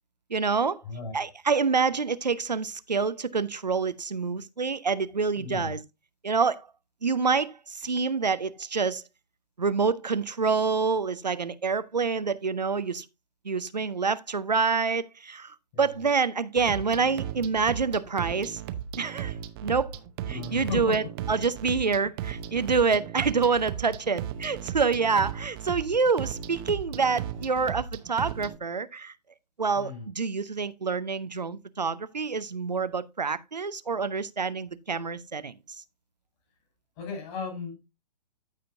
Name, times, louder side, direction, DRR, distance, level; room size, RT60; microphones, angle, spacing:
voice 1, 0.3-0.8 1.1-5.8 6.2-6.7 7.0-9.0 9.6-13.0 13.4-18.6 19.0-19.3 19.6-19.9 20.3-29.1 29.6-35.6, right 5 dB, 90° right, 0.6 m, -27 dB
voice 2, 5.3-5.7 15.7-16.0 20.2-21.0 29.8-30.1 37.0-37.8, left 5 dB, 40° left, 5.4 m, -35 dB
sound 1, 16.6-28.6, right 9 dB, 35° right, 0.8 m, -36 dB
14.5 x 5.0 x 2.6 m
figure-of-eight pair, 120°, 21 cm